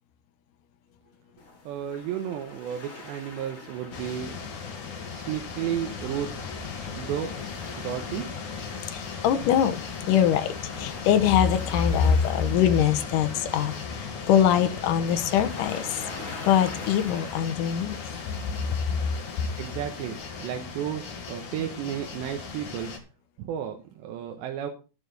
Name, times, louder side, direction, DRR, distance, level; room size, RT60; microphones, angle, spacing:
Waves surf, 1.4-20.2, left 3 dB, 25° left, 2.0 m, -45 dB
voice 1, 1.7-4.5 5.1-6.3 6.9-7.3 7.8-8.3 19.6-22.9 23.4-24.7, right 10 dB, 85° right, 3 dB, 3.3 m, -33 dB
sound 1, 3.9-23.0, left 5 dB, 50° left, 3.1 m, -37 dB
voice 2, 8.9-9.8 10.1-10.5 10.8-13.7 14.3-15.9 16.4-18.0, left 9 dB, 70° left, 9 dB, 2.0 m, -22 dB
12.0 x 9.3 x 4.0 m, 0.32 s
omnidirectional pair, 4.9 m